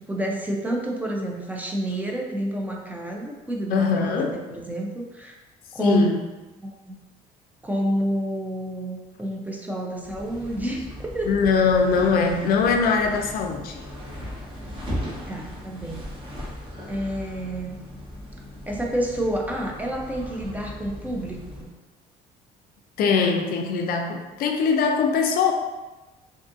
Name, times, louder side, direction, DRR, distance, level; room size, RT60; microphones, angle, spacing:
voice 1, 0.0-5.3 5.7-6.1 6.6-7.0 7.6-11.3 15.3-16.0 16.9-17.8 18.7-21.7, right 1 dB, 10° right, -1 dB, 0.4 m, -29 dB
voice 2, 3.7-4.3 5.8-6.2 11.3-13.8 23.0-25.5, left 5 dB, 60° left, 4 dB, 0.4 m, -22 dB
sound 1, 10.0-21.7, equal, 30° right, 0.9 m, -37 dB
2.6 x 2.4 x 2.5 m, 1.1 s
cardioid pair, 110°, 17 cm